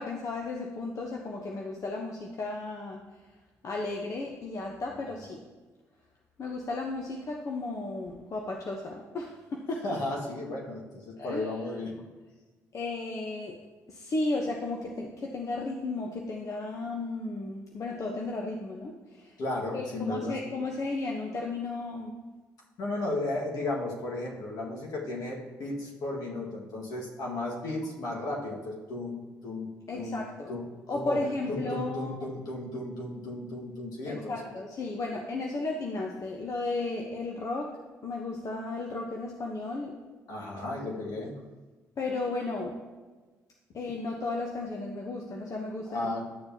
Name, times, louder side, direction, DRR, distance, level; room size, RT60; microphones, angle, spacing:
voice 1, 0.0-3.0 3.6-5.4 6.4-9.8 11.2-11.5 12.7-13.5 13.9-19.4 19.7-22.2 29.9-30.5 30.9-32.1 34.0-37.7 38.0-39.9 42.0-42.8 43.7-46.1, left 2 dB, 50° left, 0 dB, 1.0 m, -34 dB
voice 2, 9.8-11.9 19.4-20.4 22.8-30.2 30.5-31.2 31.5-34.4 40.3-41.3 45.9-46.2, left 2 dB, 65° left, -2 dB, 1.9 m, -34 dB
11.5 x 6.8 x 2.9 m, 1.3 s
supercardioid pair, 55°, 7 cm